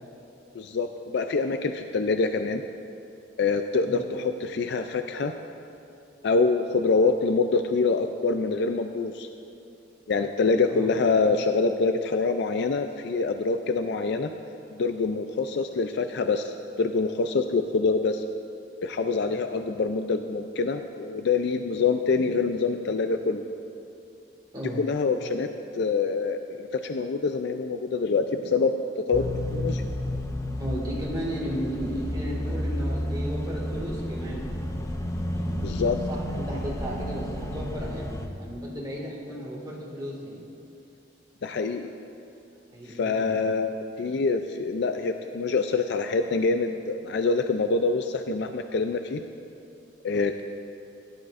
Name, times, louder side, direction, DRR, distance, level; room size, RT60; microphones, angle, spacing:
voice 1, 0.5-2.6 3.4-5.3 6.2-9.3 10.1-14.3 14.7-18.2 18.8-23.4 24.8-25.5 25.7-28.7 29.1-29.8 35.6-36.0 41.4-41.9 42.9-43.7 44.0-49.2 50.0-50.4, left 4 dB, 65° left, 7 dB, 0.4 m, -25 dB
sound 1, 29.1-38.3, left 1 dB, 15° left, 0.6 m, -31 dB
voice 2, 30.6-34.7 35.3-35.6 36.1-40.5 42.7-43.4, equal, 20° right, -4 dB, 2.0 m, -35 dB
16.0 x 11.0 x 2.5 m, 2.6 s
head